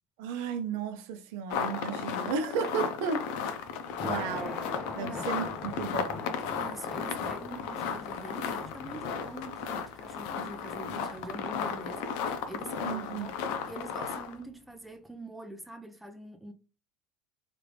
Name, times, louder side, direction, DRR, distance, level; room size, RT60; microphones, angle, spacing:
voice 1, 0.2-3.2 4.0-4.7 5.0-6.2 12.8-13.3, right 5 dB, 70° right, 0.6 m, -34 dB
sound 1, 1.5-14.4, left 6 dB, 65° left, 0.5 m, -35 dB
Thunder, 3.2-14.5, left 4 dB, 30° left, 0.7 m, -44 dB
voice 2, 6.5-16.5, right 1 dB, 5° right, 0.5 m, -45 dB
3.2 x 2.5 x 3.3 m
supercardioid pair, 140°, 0 cm